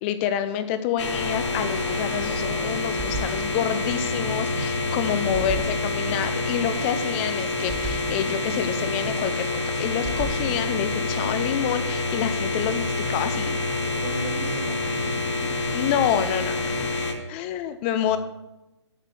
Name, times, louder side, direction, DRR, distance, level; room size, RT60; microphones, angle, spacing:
voice 1, 0.0-9.5 9.8-13.6 15.7-17.0 17.3-18.2, left 9 dB, 25° left, 10 dB, 0.5 m, -28 dB
sound 1, 1.0-17.1, left 2 dB, 75° left, 2.5 m, -27 dB
sound 2, 1.5-10.9, right 1 dB, 20° right, 1.9 m, -38 dB
voice 2, 4.3-4.7 13.9-15.2 18.0-18.2, right 2 dB, 70° right, 0 dB, 2.7 m, -35 dB
8.2 x 6.6 x 7.9 m, 0.99 s
figure-of-eight pair, 130°, 15 cm